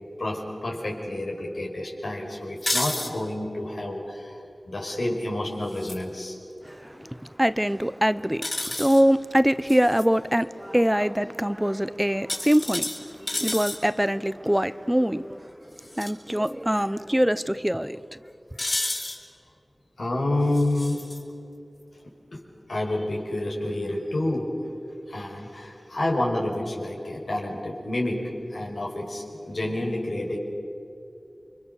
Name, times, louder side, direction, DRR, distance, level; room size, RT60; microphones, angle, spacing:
voice 1, 0.2-4.4 4.7-6.4 20.0-21.0 22.3-22.4 22.7-24.5 25.1-30.4, left 1 dB, 85° left, 5.2 m, -29 dB
sound 1, 2.6-3.1 5.7-6.0 8.4-9.0 9.7-10.0 12.3-13.8 15.8-16.1 16.5-16.6 18.6-19.2 20.5-21.2, left 1 dB, 45° left, 4.4 m, -30 dB
voice 2, 6.6-15.5 16.0-18.2, equal, 10° right, 0.7 m, -24 dB
29.5 x 24.0 x 6.8 m
wide cardioid pair, 45°, 0 cm